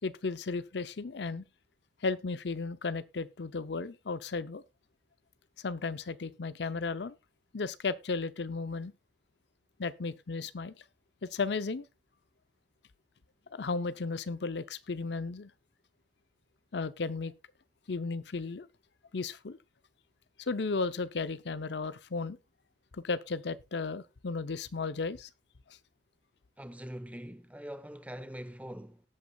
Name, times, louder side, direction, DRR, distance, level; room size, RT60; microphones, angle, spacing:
voice 1, 0.0-1.4 2.0-4.6 5.6-7.2 7.5-8.9 9.8-10.7 11.2-11.9 13.5-15.5 16.7-17.3 17.9-18.7 19.1-19.6 20.4-22.4 22.9-25.3, left 4 dB, 65° left, 0.6 m, -34 dB
voice 2, 26.6-29.0, equal, 10° right, 0.9 m, -43 dB
18.5 x 8.4 x 2.3 m
head